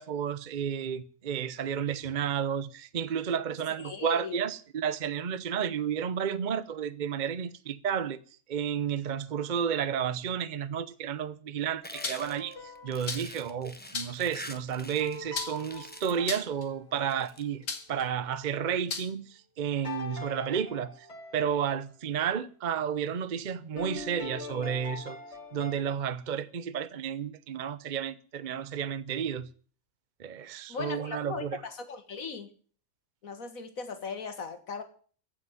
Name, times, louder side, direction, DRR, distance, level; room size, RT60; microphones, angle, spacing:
voice 1, 0.0-8.2 8.5-12.5 12.8-21.1 21.3-25.2 25.5-29.5 30.2-31.6, right 8 dB, 45° right, 0.7 m, -32 dB
voice 2, 3.8-4.4 30.7-32.5 33.2-34.8, left 5 dB, 70° left, 2.1 m, -38 dB
sound 1, 11.8-13.4 15.0-17.2 19.8-21.9 23.8-25.7, left 3 dB, 50° left, 2.1 m, -43 dB
sound 2, 11.8-15.2 15.5-16.3 17.0-17.4, left 1 dB, 10° left, 1.0 m, -45 dB
sound 3, 12.0-12.4 13.1-13.4 13.9-14.3 15.3-15.8 16.3-16.6 17.7-18.0 18.9-19.1, left 4 dB, 90° left, 2.2 m, -35 dB
15.0 x 6.2 x 9.6 m
omnidirectional pair, 1.5 m